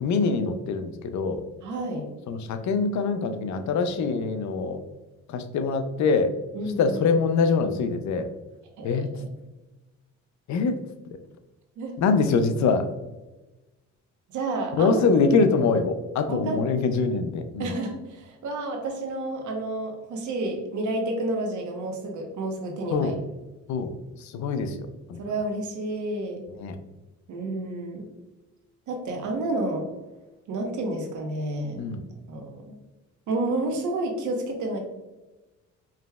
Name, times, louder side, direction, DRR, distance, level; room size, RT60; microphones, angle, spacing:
voice 1, 0.0-1.4 2.3-4.8 5.3-6.3 6.8-8.3 8.8-9.1 10.5-10.8 12.0-12.9 14.8-17.7 22.9-23.2 23.7-23.9 24.2-25.2 26.6-26.7 31.8-32.0, left 4 dB, 70° left, 8 dB, 0.5 m, -24 dB
voice 2, 1.6-2.1 6.5-7.0 8.8-9.3 11.8-12.0 14.3-15.2 16.3-16.6 17.6-23.1 25.2-26.4 27.3-28.1 28.9-29.9 30.5-31.8 32.3-32.7 33.3-34.8, right 2 dB, 75° right, 2 dB, 1.0 m, -30 dB
4.8 x 3.1 x 2.3 m, 1.1 s
cardioid pair, 90°, 30 cm